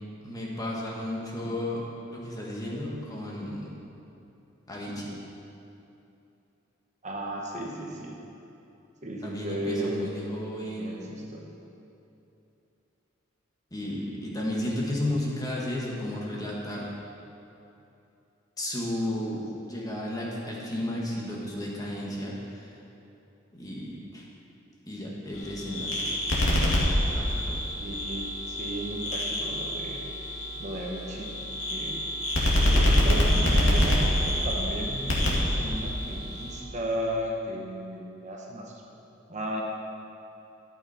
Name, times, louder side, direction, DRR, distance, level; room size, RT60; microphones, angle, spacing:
voice 1, 0.2-1.8 2.1-3.7 4.7-5.1 9.2-11.1 13.7-16.9 18.6-22.7 23.5-24.2 24.9-26.1 27.1-27.6, left 1 dB, 20° left, -4 dB, 1.6 m, -33 dB
voice 2, 7.0-8.1 9.0-10.0 10.8-11.5 27.8-30.1 30.6-32.0 32.6-38.7 39.3-39.6, right 1 dB, 40° right, -1 dB, 1.1 m, -35 dB
sound 1, 25.3-36.6, left 1 dB, 85° left, 2.1 m, -26 dB
12.5 x 8.5 x 4.3 m, 2.8 s
head